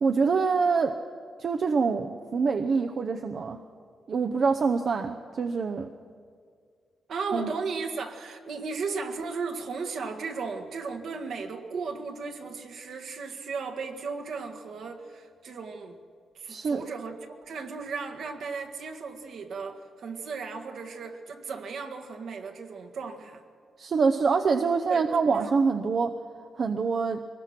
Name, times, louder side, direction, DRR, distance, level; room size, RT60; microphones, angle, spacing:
voice 1, 0.0-1.0 1.4-3.6 4.1-5.9 7.3-7.5 16.5-16.9 23.8-26.1 26.6-27.2, right 5 dB, 50° right, 5 dB, 0.7 m, -25 dB
voice 2, 7.1-16.0 16.4-23.4 24.9-25.1 25.3-25.6, right 4 dB, 70° right, 3 dB, 1.8 m, -35 dB
23.0 x 20.0 x 6.0 m, 2.1 s
cardioid pair, 130°, 0 cm